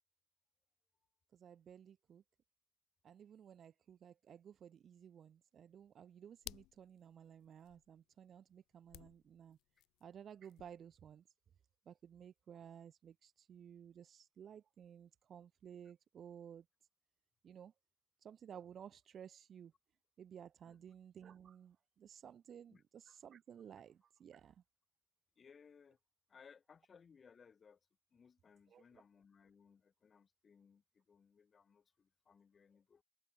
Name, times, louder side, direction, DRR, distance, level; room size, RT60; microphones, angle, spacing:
voice 1, 1.3-2.2 3.0-9.6 10.0-11.3 11.9-16.7 17.4-17.7 18.2-19.7 20.2-24.6 28.7-29.0, right 8 dB, 40° right, 0.6 m, -56 dB
sound 1, 5.8-7.9 8.8-11.0, left 18 dB, 60° left, 0.8 m, -55 dB
voice 2, 25.4-26.0 26.3-27.8 28.1-33.0, left 6 dB, 30° left, 1.2 m, -64 dB
hypercardioid pair, 80°, 0 cm